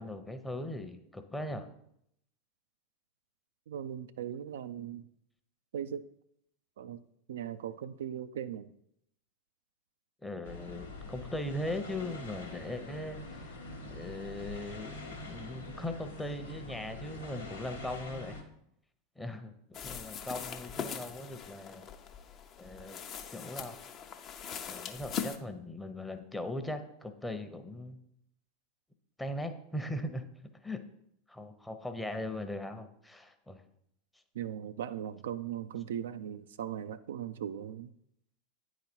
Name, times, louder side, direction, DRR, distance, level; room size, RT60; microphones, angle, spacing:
voice 1, 0.0-1.7 10.2-13.5 13.8-18.4 19.2-21.9 22.6-23.0 23.3-23.8 24.6-28.0 29.2-30.2 30.6-30.8 31.3-33.6, left 1 dB, 5° left, 7 dB, 0.8 m, -39 dB
voice 2, 3.7-5.0 5.7-6.1 6.8-7.0 7.3-8.7 34.3-37.9, right 9 dB, 70° right, 11 dB, 0.3 m, -39 dB
sound 1, 10.4-18.4, left 2 dB, 90° left, 1.0 m, -45 dB
sound 2, 19.7-25.4, left 7 dB, 40° left, 0.7 m, -41 dB
9.3 x 4.0 x 4.4 m, 0.75 s
hypercardioid pair, 90°, 0 cm